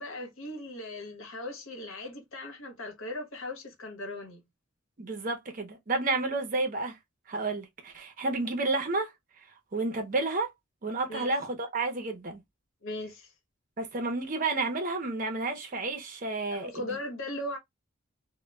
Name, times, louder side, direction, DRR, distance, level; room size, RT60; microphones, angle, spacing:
voice 1, 0.0-4.4 6.3-6.4 11.1-11.3 12.8-13.3 16.5-17.6, left 1 dB, 80° left, 1.0 m, -38 dB
voice 2, 5.0-7.0 7.3-9.1 9.7-10.5 10.8-12.4 13.8-17.0, right 3 dB, 40° right, 0.6 m, -31 dB
2.1 x 2.1 x 3.1 m
head